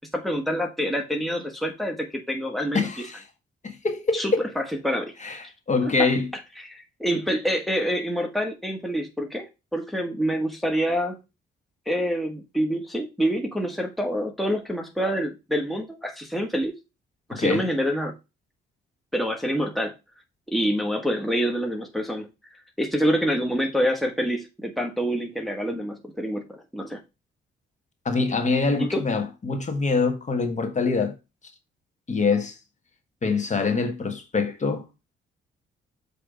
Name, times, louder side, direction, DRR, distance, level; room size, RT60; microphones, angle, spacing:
voice 1, 0.1-2.9 4.1-5.1 6.0-6.1 6.6-11.2 11.9-16.7 17.3-18.1 19.1-19.9 20.5-22.3 22.8-27.0 28.8-29.0, equal, ahead, 1.4 m, -26 dB
voice 2, 2.7-3.2 3.6-4.5 5.2-6.3 17.3-17.7 28.1-31.2 32.1-32.6 33.2-34.8, left 4 dB, 35° left, 1.6 m, -24 dB
7.6 x 3.5 x 4.9 m
cardioid pair, 90°, 20 cm